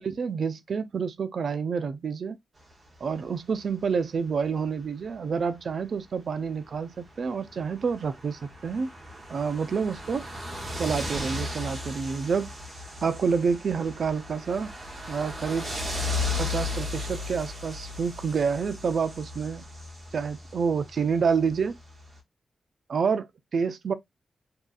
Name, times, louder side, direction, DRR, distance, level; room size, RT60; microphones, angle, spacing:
voice 1, 0.0-2.4 3.0-8.9 9.3-10.2 10.8-12.5 13.0-14.7 15.1-15.7 16.4-19.6 20.1-21.8 22.9-23.9, right 5 dB, 65° right, 0.4 m, -28 dB
sound 1, 2.9-3.2 4.3-4.4 4.7-4.8 5.1-5.2 5.5-5.7 6.3-22.2, left 2 dB, 40° right, 1.1 m, -36 dB
2.7 x 2.3 x 2.4 m
cardioid pair, 80°, 0 cm